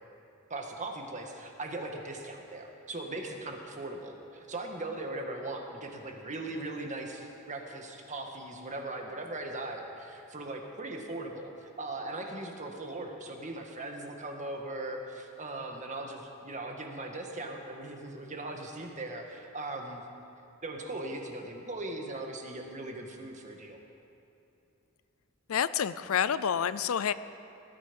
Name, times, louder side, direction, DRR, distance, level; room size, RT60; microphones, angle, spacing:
voice 1, 0.5-11.5 11.8-20.0 20.6-23.8, right 2 dB, 35° right, 2 dB, 1.7 m, -39 dB
voice 2, 25.5-27.1, left 8 dB, 80° left, 15 dB, 0.4 m, -28 dB
19.0 x 13.0 x 5.4 m, 2.9 s
head